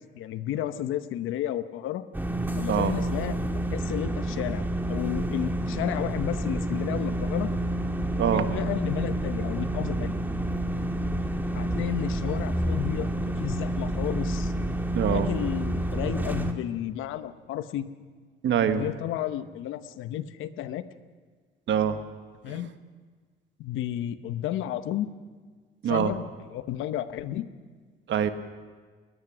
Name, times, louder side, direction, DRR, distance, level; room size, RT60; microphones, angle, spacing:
voice 1, 0.2-2.0 2.6-3.4 3.7-7.5 8.3-10.1 11.5-13.1 13.4-14.5 15.0-17.9 18.7-20.8 22.4-22.7 23.6-25.1 25.9-27.5, left 11 dB, 90° left, 12 dB, 0.9 m, -32 dB
sound 1, 2.1-16.5, right 1 dB, 10° right, 1.8 m, -29 dB
voice 2, 8.2-8.5 14.9-15.3 18.4-18.8 21.7-22.0 22.5-22.6 25.8-26.1 28.1-28.3, right 8 dB, 70° right, 9 dB, 1.4 m, -24 dB
21.0 x 20.5 x 6.2 m, 1.5 s
cardioid pair, 90°, 20 cm